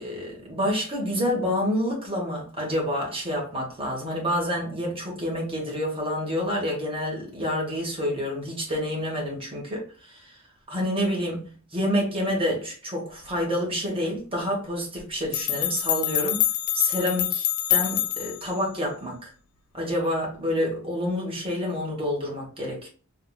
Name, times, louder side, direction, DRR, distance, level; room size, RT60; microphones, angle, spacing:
voice 1, 0.0-10.4 10.7-16.5 16.7-19.3 19.7-22.9, equal, 25° right, 1.1 m, -28 dB
sound 1, 15.0-15.1 15.3-18.5, left 12 dB, 90° left, 0.4 m, -25 dB
3.6 x 2.4 x 2.2 m
head